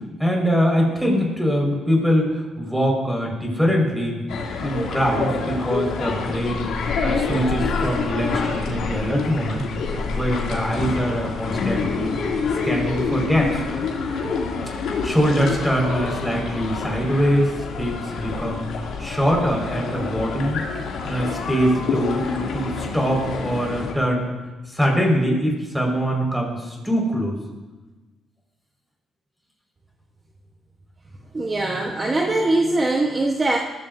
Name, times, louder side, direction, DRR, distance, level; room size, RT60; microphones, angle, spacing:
voice 1, 0.2-4.2 4.6-9.6 10.1-12.2 12.6-13.6 15.0-17.5 17.8-18.6 19.0-20.6 21.0-22.3 22.5-24.3 24.7-27.4, equal, ahead, -1 dB, 5.0 m, -23 dB
sound 1, 4.3-23.9, left 4 dB, 80° left, 2.7 m, -27 dB
voice 2, 31.3-33.6, right 2 dB, 30° right, 0 dB, 1.2 m, -21 dB
20.5 x 15.0 x 2.7 m, 1.2 s
cardioid pair, 90°, 0 cm